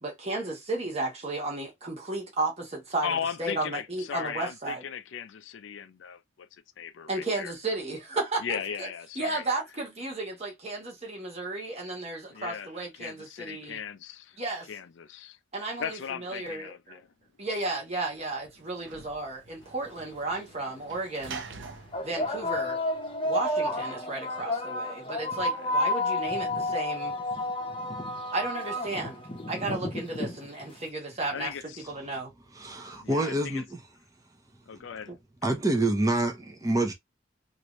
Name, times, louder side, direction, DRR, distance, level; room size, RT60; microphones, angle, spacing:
voice 1, 0.0-3.1 3.4-4.8 7.1-8.9 9.2-13.8 14.4-14.7 15.5-17.0 17.4-21.4 22.0-22.8 23.2-27.1 28.3-29.2 29.5-31.5 31.9-32.3 35.1-35.2, right 2 dB, 35° right, 1.2 m, -33 dB
voice 2, 3.0-7.5 8.4-9.4 12.3-14.4 14.7-15.4 15.8-17.1 25.5-25.7 31.3-31.9 33.0-33.6 34.7-35.1, left 7 dB, 75° left, 0.4 m, -37 dB
Sliding door / Slam, 17.5-23.4, right 4 dB, 75° right, 0.7 m, -47 dB
sound 1, 19.9-20.0 20.9-21.1 21.9-30.8, left 1 dB, 25° left, 0.8 m, -31 dB
voice 3, 32.6-33.8 35.4-36.9, right 2 dB, 20° right, 0.7 m, -27 dB
3.1 x 2.6 x 3.0 m
head